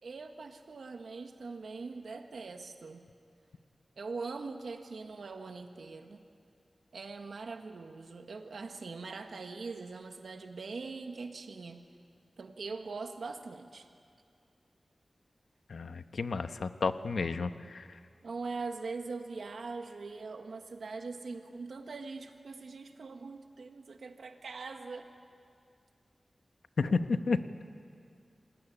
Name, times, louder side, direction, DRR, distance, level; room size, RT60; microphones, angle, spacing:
voice 1, 0.0-3.0 4.0-6.2 6.9-11.8 12.4-13.9 18.2-25.1, right 4 dB, 85° right, 5 dB, 1.5 m, -42 dB
voice 2, 15.7-17.8 26.8-27.4, left 4 dB, 85° left, 10 dB, 1.0 m, -31 dB
27.5 x 20.0 x 10.0 m, 2.3 s
wide cardioid pair, 85°, 0 cm